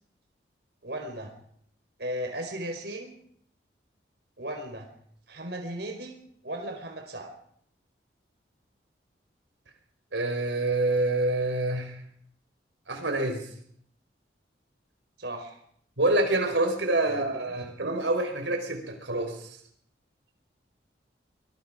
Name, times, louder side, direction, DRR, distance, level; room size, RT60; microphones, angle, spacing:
voice 1, 0.8-1.3 2.0-3.1 4.4-4.9 5.3-6.1 6.4-7.3 15.2-15.6 17.1-17.7, right 1 dB, 65° right, 3 dB, 4.8 m, -36 dB
voice 2, 10.1-11.9 12.9-13.4 16.0-19.4, right 2 dB, 85° right, 4 dB, 5.0 m, -26 dB
25.0 x 21.5 x 5.1 m, 0.65 s
head